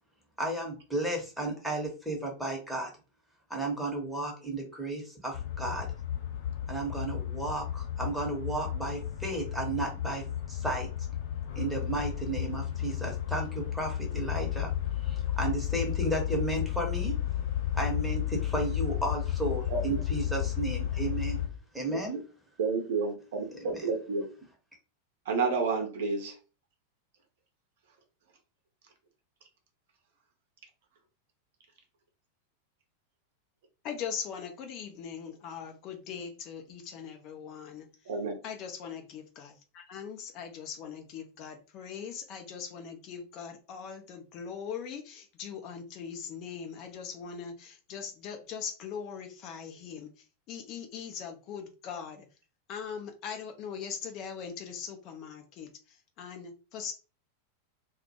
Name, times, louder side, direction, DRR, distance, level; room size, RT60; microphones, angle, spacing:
voice 1, 0.4-2.9 3.5-5.9 6.7-10.9 11.5-14.7 15.0-17.1 17.7-21.4 21.7-22.2 23.6-23.8, right 2 dB, ahead, 0.8 m, -33 dB
sound 1, 5.3-21.5, left 11 dB, 55° left, 1.1 m, -33 dB
voice 2, 19.7-20.0 21.9-22.2 22.6-24.3 25.3-26.3 38.1-38.4, right 4 dB, 55° right, 0.6 m, -30 dB
voice 3, 33.8-37.9 38.4-50.1 50.5-52.3 52.7-56.9, left 7 dB, 40° left, 0.4 m, -40 dB
2.1 x 2.1 x 2.8 m
figure-of-eight pair, 90°, 0 cm